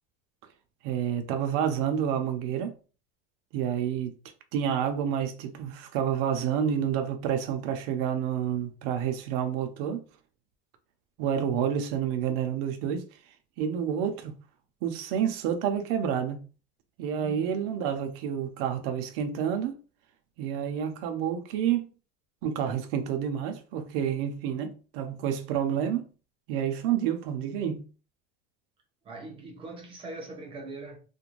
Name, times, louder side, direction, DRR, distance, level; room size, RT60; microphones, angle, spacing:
voice 1, 0.8-2.7 3.5-4.1 4.5-10.0 11.2-13.1 13.6-14.3 14.8-16.4 17.0-19.8 20.4-21.9 22.4-26.1 26.5-27.9, right 8 dB, 70° right, 0.6 m, -29 dB
voice 2, 17.2-17.5 29.0-31.0, right 2 dB, 20° right, 0.4 m, -41 dB
2.5 x 2.2 x 3.0 m
cardioid pair, 170°, 30 cm